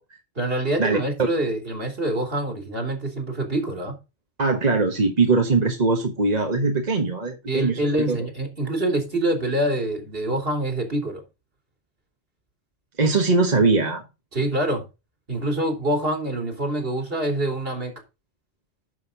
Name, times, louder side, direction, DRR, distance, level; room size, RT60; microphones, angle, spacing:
voice 1, 0.4-3.9 7.5-11.2 14.3-14.8 15.3-17.9, right 1 dB, 60° right, 3.3 m, -25 dB
voice 2, 4.4-8.2 13.0-14.0, right 3 dB, 40° right, 1.4 m, -21 dB
11.0 x 6.6 x 3.8 m
omnidirectional pair, 1.1 m